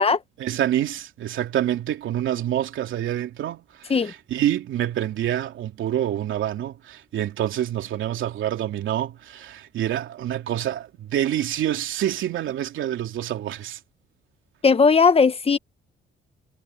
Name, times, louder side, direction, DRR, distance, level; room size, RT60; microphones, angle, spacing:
voice 1, 0.4-13.8, right 11 dB, 80° right, 2.9 m, -27 dB
voice 2, 14.6-15.6, left 5 dB, 30° left, 1.3 m, -17 dB
cardioid pair, 90°, 20 cm